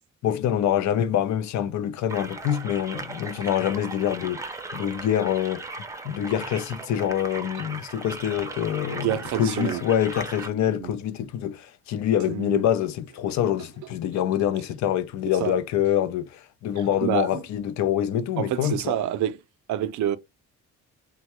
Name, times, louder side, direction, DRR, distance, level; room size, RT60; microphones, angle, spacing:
voice 1, 0.2-4.5 4.7-5.7 6.0-19.0, left 10 dB, 65° left, 0.5 m, -25 dB
sound 1, 2.1-10.5, right 2 dB, 10° right, 0.5 m, -37 dB
voice 2, 9.0-9.8 10.8-10.9 12.3-12.6 15.4-15.5 17.0-17.4 18.4-19.4 19.7-20.2, right 11 dB, 70° right, 0.5 m, -27 dB
3.4 x 2.2 x 2.9 m
cardioid pair, 90°, 30 cm